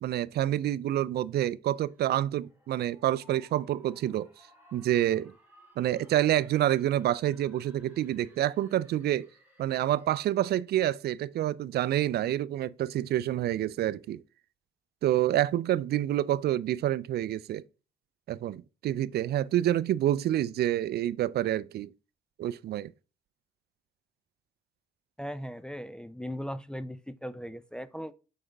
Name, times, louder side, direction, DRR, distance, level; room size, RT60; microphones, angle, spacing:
voice 1, 0.0-4.3 4.7-5.3 5.8-9.3 9.6-14.2 15.0-17.6 18.3-21.9 22.4-22.9, right 12 dB, 70° right, 0.4 m, -28 dB
sound 1, 1.7-10.5, equal, 10° right, 3.7 m, -61 dB
voice 2, 25.2-28.1, equal, 5° left, 0.5 m, -38 dB
6.2 x 5.0 x 3.4 m
supercardioid pair, 60°, 17 cm